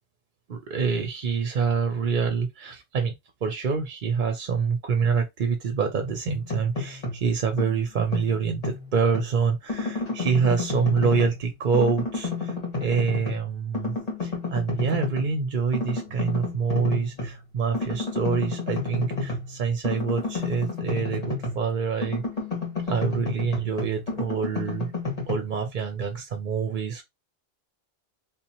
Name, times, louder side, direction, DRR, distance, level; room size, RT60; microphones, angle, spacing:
voice 1, 0.5-3.1 3.4-22.2 22.9-24.9 25.3-27.0, right 6 dB, 55° right, 0.7 m, -26 dB
sound 1, 6.3-7.3 7.6-9.3 9.7-11.4 11.7-13.5 13.7-15.3 15.7-17.4 17.7-21.7 22.0-25.3, left 3 dB, 40° left, 1.5 m, -31 dB
3.7 x 2.8 x 2.8 m
omnidirectional pair, 1.0 m